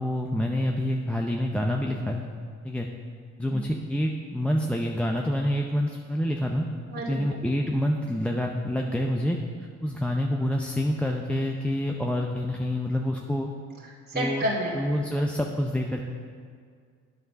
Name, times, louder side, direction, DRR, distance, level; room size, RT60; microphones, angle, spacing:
voice 1, 0.0-2.2 2.6-2.9 3.4-6.7 7.1-9.4 9.8-13.5 14.1-14.4 14.7-16.0, left 1 dB, 5° left, 1 dB, 0.6 m, -27 dB
voice 2, 6.9-7.2 13.8-14.9, right 1 dB, 35° right, -5 dB, 2.3 m, -30 dB
9.0 x 6.8 x 5.8 m, 2.1 s
cardioid pair, 90°, 30 cm